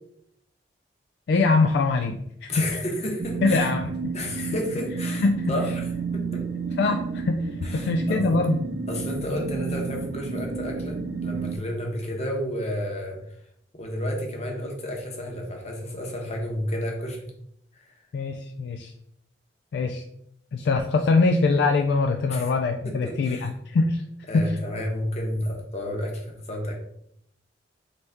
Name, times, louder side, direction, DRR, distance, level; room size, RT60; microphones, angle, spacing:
voice 1, 1.3-2.8 3.4-3.9 4.4-4.5 5.2-5.5 6.8-8.6 18.1-18.9 19.7-20.0 20.5-24.0 24.3-24.6, left 3 dB, 65° left, 5 dB, 0.3 m, -23 dB
voice 2, 2.5-3.7 4.1-5.8 6.1-6.4 7.6-8.4 8.9-13.2 13.7-17.3 17.8-17.9 22.3-22.5 22.8-23.5 24.3-26.8, left 1 dB, 35° left, 1 dB, 1.0 m, -31 dB
sound 1, 3.2-11.6, right 5 dB, 75° right, 0.5 m, -31 dB
4.0 x 3.3 x 3.4 m, 0.73 s
head